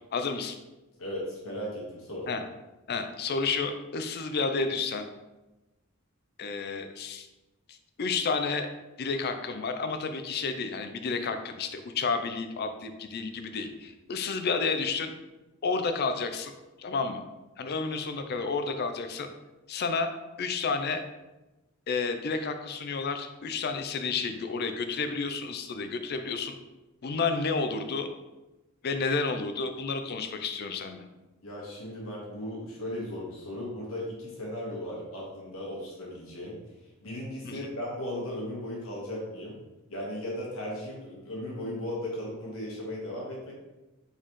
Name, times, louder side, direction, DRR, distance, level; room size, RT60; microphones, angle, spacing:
voice 1, 0.1-0.6 2.3-2.4 2.9-5.1 6.4-7.3 7.7-8.7 9.0-15.1 15.6-16.5 16.8-17.2 17.6-19.3 19.7-20.1 20.4-21.0 21.9-26.5 27.0-28.1 28.8-31.0 37.4-37.6, left 4 dB, 50° left, 8 dB, 0.4 m, -31 dB
voice 2, 1.0-2.3 31.4-39.6 39.9-43.5, left 1 dB, 85° left, -3 dB, 1.5 m, -36 dB
4.1 x 4.0 x 3.1 m, 1.0 s
head